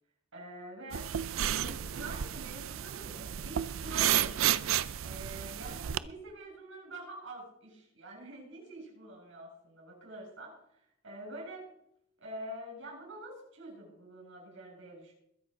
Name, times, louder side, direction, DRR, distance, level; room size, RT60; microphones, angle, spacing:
voice 1, 0.3-1.1 1.5-4.6 5.0-10.8 11.0-11.7 12.2-15.1, right 1 dB, 65° right, 0 dB, 7.1 m, -46 dB
sound 1, 0.9-6.0, right 10 dB, 85° right, 0.5 m, -32 dB
21.5 x 7.5 x 5.2 m, 0.73 s
head